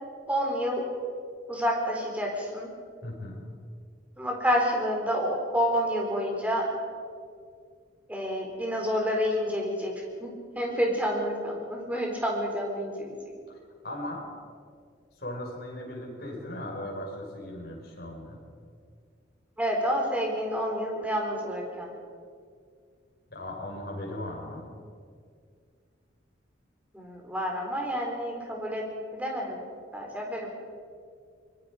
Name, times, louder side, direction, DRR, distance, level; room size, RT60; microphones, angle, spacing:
voice 1, 0.3-0.8 1.5-2.7 4.2-6.7 8.1-9.9 10.2-10.3 10.6-13.1 19.6-21.9 26.9-28.8 29.1-29.6 29.9-30.5, equal, 10° right, -1 dB, 4.1 m, -29 dB
voice 2, 3.0-3.4 13.5-13.6 13.8-14.2 15.2-18.4 23.3-24.7, left 1 dB, 55° left, -2 dB, 6.1 m, -37 dB
24.5 x 22.0 x 5.2 m, 2.1 s
head